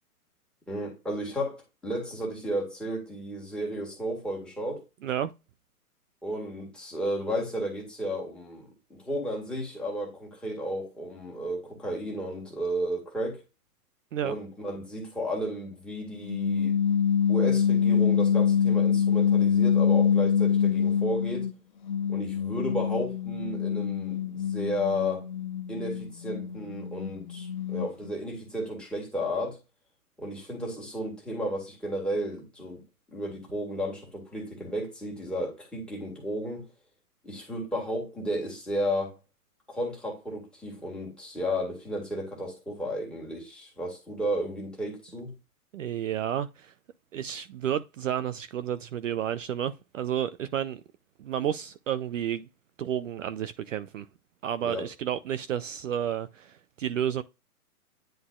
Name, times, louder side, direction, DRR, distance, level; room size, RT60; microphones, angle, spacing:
voice 1, 0.7-4.8 6.2-13.4 14.2-16.8 17.3-21.5 22.1-25.3 25.7-29.6 30.2-32.8 33.1-36.7 37.2-39.2 39.7-45.3 54.6-54.9, equal, ahead, 1.9 m, -33 dB
sound 1, 16.3-21.5 21.9-28.1, left 7 dB, 35° left, 0.4 m, -25 dB
voice 2, 45.7-46.7 47.1-50.8 51.2-52.5 52.8-54.1 54.4-57.2, right 10 dB, 55° right, 0.5 m, -31 dB
10.0 x 3.9 x 2.4 m
hypercardioid pair, 140°, 46 cm